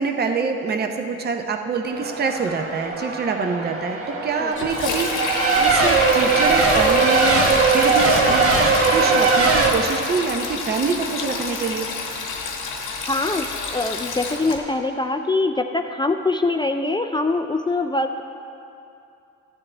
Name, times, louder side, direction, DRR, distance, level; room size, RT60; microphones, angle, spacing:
voice 1, 0.0-11.9, right 5 dB, 35° right, 4 dB, 0.7 m, -25 dB
Race car auto racing / Accelerating revving vroom / Mechanisms, 1.9-9.7, right 4 dB, 50° right, 1.3 m, -20 dB
Sink (filling or washing), 4.5-14.6, left 4 dB, 90° left, 1.2 m, -29 dB
voice 2, 13.1-13.5 13.7-18.2, left 2 dB, 15° left, 6 dB, 0.3 m, -23 dB
13.5 x 7.5 x 3.3 m, 2.7 s
cardioid pair, 90°, 30 cm